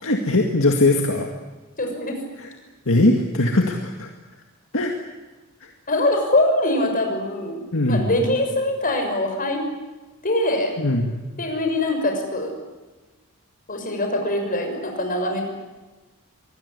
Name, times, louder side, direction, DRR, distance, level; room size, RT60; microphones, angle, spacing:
voice 1, 0.0-1.3 2.4-2.5 2.9-4.1 4.7-4.9 5.6-5.7 7.7-8.1 10.8-11.2, left 2 dB, 65° left, 2 dB, 2.1 m, -20 dB
voice 2, 1.8-2.2 5.9-7.6 7.9-9.6 10.2-10.7 11.4-12.5 13.7-15.4, left 1 dB, 40° left, 3 dB, 6.2 m, -23 dB
25.0 x 20.0 x 9.8 m, 1.2 s
head